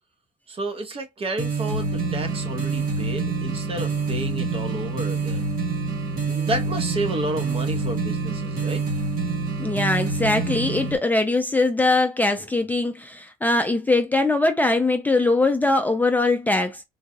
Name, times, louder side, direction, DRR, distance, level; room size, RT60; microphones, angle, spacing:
voice 1, 0.5-5.5 6.3-8.8, right 2 dB, 35° right, 0.9 m, -31 dB
sound 1, 1.4-11.0, right 4 dB, 55° right, 1.3 m, -26 dB
voice 2, 9.6-16.8, left 2 dB, 10° left, 0.5 m, -21 dB
3.9 x 2.3 x 2.6 m
cardioid pair, 110°, 17 cm